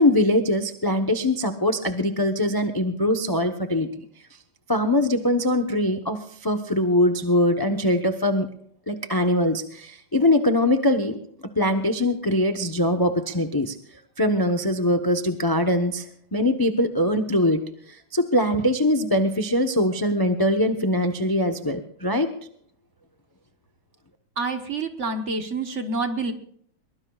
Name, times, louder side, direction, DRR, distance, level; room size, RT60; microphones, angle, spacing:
voice 1, 0.0-3.9 4.7-8.5 8.9-11.2 11.6-13.7 14.2-16.1 16.3-17.6 17.9-22.3, left 1 dB, 30° left, 7 dB, 0.4 m, -22 dB
voice 2, 24.4-26.3, right 3 dB, 40° right, 7 dB, 1.2 m, -27 dB
23.0 x 21.5 x 2.4 m, 0.64 s
omnidirectional pair, 2.2 m